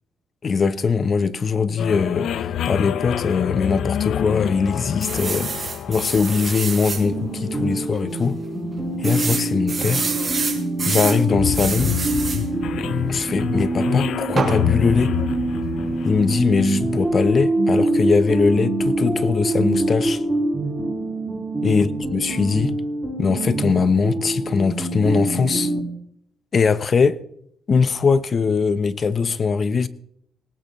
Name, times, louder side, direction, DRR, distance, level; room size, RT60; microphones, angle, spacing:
voice 1, 0.4-8.4 9.0-10.1 10.8-11.9 13.1-15.1 16.0-20.2 21.6-22.7 23.2-25.7 26.5-27.2 27.7-29.9, left 5 dB, 45° left, 0.9 m, -21 dB
sound 1, 1.8-17.2, left 10 dB, 70° left, 0.7 m, -28 dB
sound 2, 5.0-7.0 7.6-7.7 7.9-8.0 9.0-11.2 11.5-12.4 14.4-14.6, right 5 dB, 35° right, 4.5 m, -27 dB
sound 3, 6.9-25.8, right 2 dB, 10° right, 6.7 m, -25 dB
19.0 x 18.0 x 3.2 m
cardioid pair, 90°, 0 cm